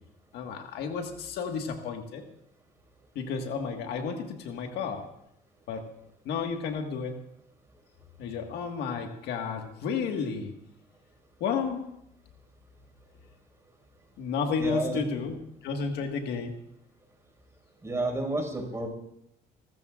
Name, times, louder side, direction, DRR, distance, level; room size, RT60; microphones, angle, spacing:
voice 1, 0.3-2.2 3.1-5.1 5.7-5.8 6.2-7.1 8.2-10.5 11.4-11.8 14.2-15.4 15.6-16.5, left 5 dB, 80° left, 4 dB, 1.7 m, -32 dB
voice 2, 14.6-15.0 17.8-18.9, right 2 dB, 15° right, 2 dB, 5.2 m, -30 dB
29.0 x 14.0 x 2.5 m, 0.78 s
cardioid pair, 110°, 17 cm